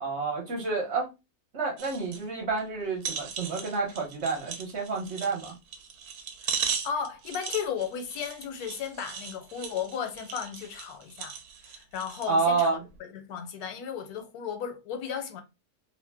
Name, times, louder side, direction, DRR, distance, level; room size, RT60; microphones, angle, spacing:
voice 1, 0.0-1.1 1.5-5.5 12.3-12.8, right 4 dB, 55° right, 1.1 m, -29 dB
sound 1, 1.8-2.2 2.6-2.7 3.0-12.3 12.9-13.0, right 7 dB, 85° right, 1.1 m, -37 dB
voice 2, 6.4-11.3 11.6-15.4, left 7 dB, 85° left, 1.2 m, -35 dB
2.8 x 2.0 x 3.3 m
omnidirectional pair, 1.6 m